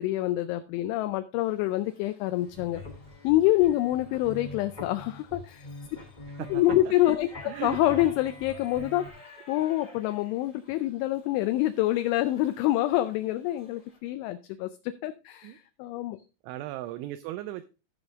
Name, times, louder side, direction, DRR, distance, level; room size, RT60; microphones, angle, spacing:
voice 1, 0.0-2.8 3.2-5.7 6.5-9.1 9.5-14.7 15.0-16.2, left 15 dB, 85° left, 10 dB, 2.8 m, -26 dB
Shout / Livestock farm animals working animals, 1.4-14.0, left 2 dB, 40° left, 1.1 m, -55 dB
sound 1, 2.4-9.1, left 2 dB, 55° left, 0.5 m, -44 dB
voice 2, 6.3-6.9 7.4-7.8 15.4-15.6 16.4-17.7, right 14 dB, 85° right, 11 dB, 2.7 m, -37 dB
15.5 x 5.2 x 3.5 m, 0.31 s
omnidirectional pair, 5.8 m